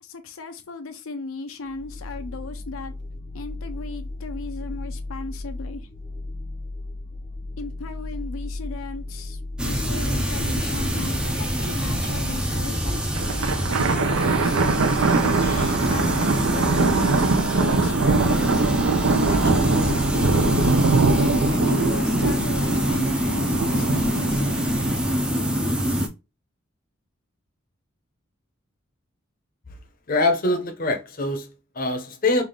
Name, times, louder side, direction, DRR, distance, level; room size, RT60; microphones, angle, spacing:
voice 1, 0.0-2.9 3.3-5.8 7.6-9.4 9.6-13.1 13.7-14.7 15.0-18.6 19.1-24.5, left 3 dB, 85° left, 0.5 m, -36 dB
sound 1, 1.6-11.3, left 2 dB, 30° right, 1.0 m, -35 dB
sound 2, 9.6-26.1, equal, 5° right, 0.4 m, -25 dB
sound 3, 10.9-11.0 11.3-11.4 11.9-12.3 13.0-25.2, right 3 dB, 85° right, 0.6 m, -22 dB
voice 2, 30.1-32.4, left 2 dB, 45° left, 0.7 m, -24 dB
3.4 x 2.4 x 3.7 m
head